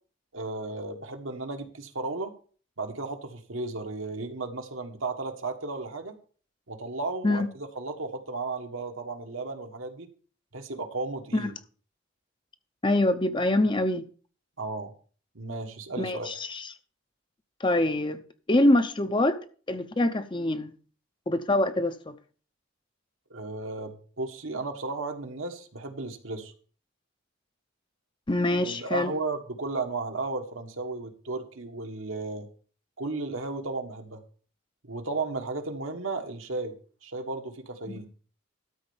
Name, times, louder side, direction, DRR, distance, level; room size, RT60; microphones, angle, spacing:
voice 1, 0.3-2.3 2.8-6.1 6.7-10.1 10.5-11.6 14.6-14.9 15.3-16.3 23.3-26.5 28.6-32.5 33.0-34.2 34.8-36.7 37.0-38.1, right 3 dB, 70° right, 1.5 m, -34 dB
voice 2, 12.8-14.1 16.0-16.7 17.6-18.2 18.5-19.4 19.7-20.7 21.3-22.2 28.3-29.1 37.9-38.0, left 1 dB, 20° left, 0.6 m, -25 dB
13.0 x 4.4 x 7.1 m
head